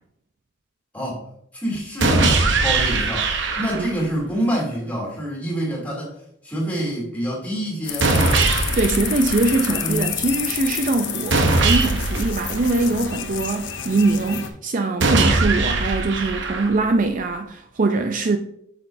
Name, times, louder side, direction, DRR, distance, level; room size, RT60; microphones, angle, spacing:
voice 1, 0.9-6.1 6.4-8.5 9.7-10.2, equal, 5° left, 2.7 m, -27 dB
sound 1, 2.0-4.0 8.0-10.0 11.3-13.3 15.0-17.0, right 3 dB, 60° right, 0.8 m, -21 dB
sound 2, 7.8-14.5, left 8 dB, 60° left, 0.8 m, -29 dB
voice 2, 8.8-18.4, right 3 dB, 40° right, 0.4 m, -22 dB
8.2 x 6.6 x 2.6 m
head